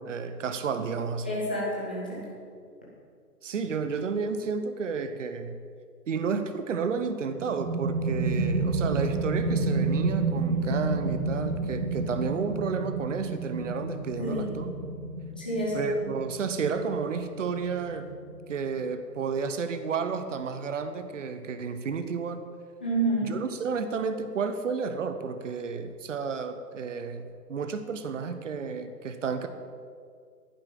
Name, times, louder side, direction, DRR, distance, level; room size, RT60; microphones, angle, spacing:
voice 1, 0.0-1.3 3.4-5.6 6.1-14.7 15.7-18.1 18.5-22.4 23.2-29.5, right 5 dB, 50° right, 9 dB, 1.1 m, -31 dB
voice 2, 1.2-2.2 14.2-14.6 15.4-16.1 22.8-23.4, right 1 dB, 5° left, -6 dB, 0.6 m, -29 dB
sound 1, 7.3-18.7, right 3 dB, 85° right, 2.2 m, -30 dB
11.0 x 9.5 x 7.5 m, 2.2 s
hypercardioid pair, 150°, 49 cm